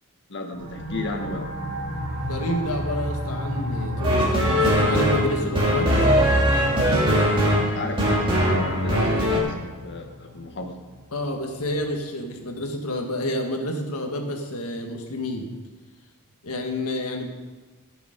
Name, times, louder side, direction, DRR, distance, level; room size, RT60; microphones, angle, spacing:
voice 1, 0.3-1.5 7.7-10.8, left 2 dB, 55° left, 4 dB, 1.4 m, -33 dB
sound 1, 0.5-11.9, equal, 55° right, 3.1 m, -34 dB
voice 2, 2.3-6.1 9.1-9.2 11.1-15.5 16.4-17.3, left 1 dB, 75° left, 3 dB, 1.7 m, -29 dB
sound 2, 4.0-9.4, equal, 25° right, 2.5 m, -20 dB
15.0 x 7.0 x 5.2 m, 1.3 s
head